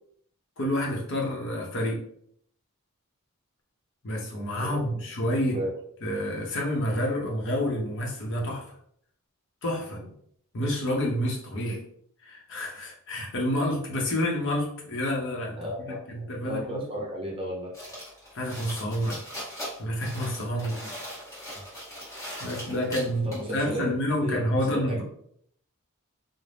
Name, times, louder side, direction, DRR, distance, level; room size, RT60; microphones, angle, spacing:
voice 1, 0.6-2.0 4.0-5.6 6.0-8.6 9.6-10.0 10.5-11.8 12.2-16.8 18.3-19.2 19.8-20.8 22.4-25.0, left 1 dB, 55° left, -1 dB, 0.7 m, -29 dB
voice 2, 4.6-5.0 5.5-5.7 9.9-10.1 15.6-17.7 20.8-20.9 21.5-21.6 22.9-23.9 24.2-25.0, equal, 25° right, -3 dB, 0.7 m, -34 dB
sound 1, 17.7-23.5, equal, 15° left, 1.0 m, -40 dB
2.5 x 2.1 x 3.2 m, 0.67 s
head